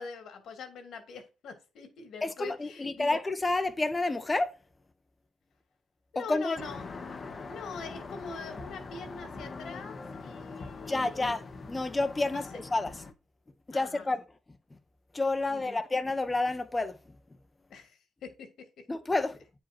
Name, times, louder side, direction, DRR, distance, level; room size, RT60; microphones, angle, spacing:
voice 1, 0.0-3.2 6.1-6.9 7.5-11.4 12.3-12.4 13.7-14.1 15.5-15.8 17.7-18.8, left 4 dB, 70° left, 2.5 m, -43 dB
voice 2, 2.2-4.5 6.1-6.6 10.9-12.9 13.7-14.2 15.1-17.0 18.9-19.4, left 2 dB, 20° left, 1.2 m, -29 dB
sound 1, 6.6-13.1, left 4 dB, 40° left, 1.3 m, -43 dB
9.1 x 5.1 x 4.5 m
cardioid pair, 90°, 0 cm